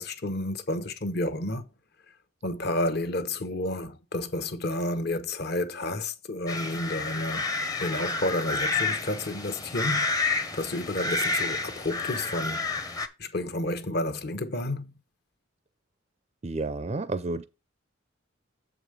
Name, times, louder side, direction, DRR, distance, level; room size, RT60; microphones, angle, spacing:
voice 1, 0.0-1.7 2.4-7.4 7.8-10.1 10.5-12.6 13.2-14.8, left 1 dB, 55° left, 0.9 m, -30 dB
sound 1, 6.5-13.1, left 3 dB, 20° left, 0.7 m, -30 dB
voice 2, 16.4-17.4, right 2 dB, 30° right, 0.4 m, -30 dB
7.6 x 5.0 x 5.0 m
head